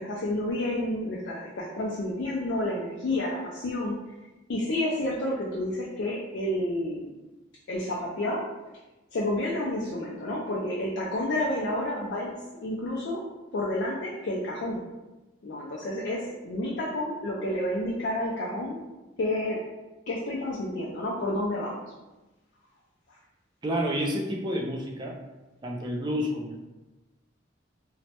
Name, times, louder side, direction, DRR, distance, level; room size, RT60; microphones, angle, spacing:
voice 1, 0.0-3.9 4.5-7.1 7.7-8.4 9.1-13.2 13.5-14.8 15.4-18.8 19.2-19.6 20.1-21.8 23.1-23.2, left 1 dB, 60° left, -4 dB, 0.4 m, -30 dB
voice 2, 23.6-25.2 25.6-26.6, equal, 25° right, 0 dB, 0.3 m, -29 dB
3.0 x 2.1 x 2.8 m, 1.1 s
head